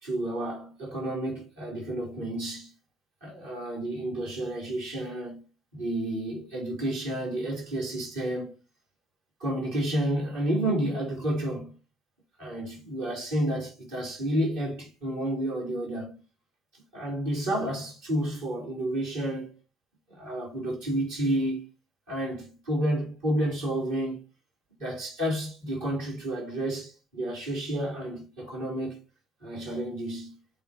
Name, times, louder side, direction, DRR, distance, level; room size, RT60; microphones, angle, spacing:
voice 1, 0.0-2.7 3.2-5.4 5.7-8.5 9.4-11.7 12.4-16.1 16.9-19.5 20.1-21.6 22.1-24.2 24.8-29.0 29.4-30.4, right 1 dB, 75° right, 3.2 m, -30 dB
8.7 x 3.9 x 2.8 m
figure-of-eight pair, 55°, 0 cm